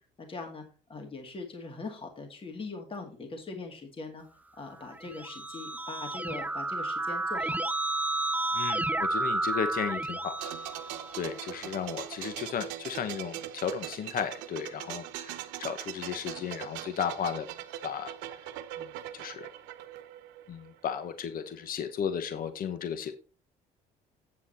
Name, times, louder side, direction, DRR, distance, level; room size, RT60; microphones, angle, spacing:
voice 1, 0.2-0.6 0.9-4.2 4.6-7.6, left 3 dB, 30° left, 4 dB, 2.1 m, -41 dB
Keyboard (musical), 4.8-11.5, right 2 dB, 10° right, 0.5 m, -32 dB
voice 2, 8.5-10.4 11.1-17.5 17.8-18.1 18.8-19.5 20.5-23.1, left 8 dB, 50° left, 10 dB, 1.1 m, -34 dB
sound 1, 10.4-21.0 21.3-21.5, right 12 dB, 90° right, 0.8 m, -41 dB
8.5 x 7.3 x 4.2 m, 0.37 s
supercardioid pair, 85°, 18 cm